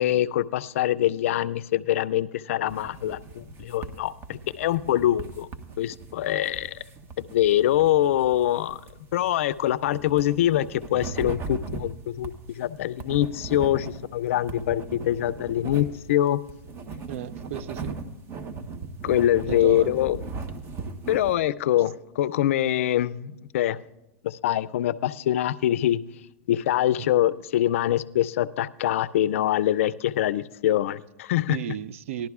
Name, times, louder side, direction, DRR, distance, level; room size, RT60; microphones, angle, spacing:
voice 1, 0.0-5.5 5.8-6.8 7.2-8.8 9.1-16.4 19.0-20.2 21.1-23.8 24.2-26.0 26.5-31.6, left 12 dB, 70° left, 0.4 m, -24 dB
sound 1, 2.7-21.3, right 4 dB, 35° right, 1.1 m, -39 dB
voice 2, 17.1-18.0 19.5-19.9 27.0-27.1 31.5-32.3, right 10 dB, 70° right, 0.4 m, -34 dB
18.5 x 11.5 x 2.4 m
hypercardioid pair, 115°, 7 cm